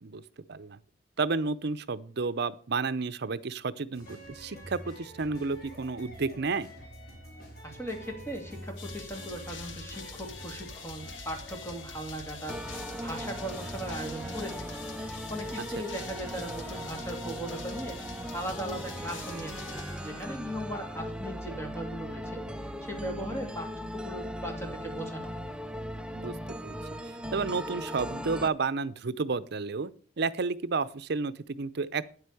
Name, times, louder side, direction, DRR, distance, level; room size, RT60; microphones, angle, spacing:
voice 1, 1.2-6.7 26.1-26.4 26.6-26.8 27.3-29.9 30.2-32.1, right 4 dB, 60° right, 15 dB, 0.7 m, -31 dB
sound 1, 3.9-20.3, equal, 55° left, 4.4 m, -46 dB
voice 2, 7.6-12.6 13.0-14.6 15.3-18.0 18.3-25.4, right 1 dB, 15° left, 2 dB, 2.7 m, -38 dB
sound 2, 8.8-20.7, left 5 dB, 85° left, 1.4 m, -45 dB
sound 3, 12.5-28.5, equal, 5° right, 0.5 m, -38 dB
9.7 x 8.1 x 6.9 m, 0.43 s
head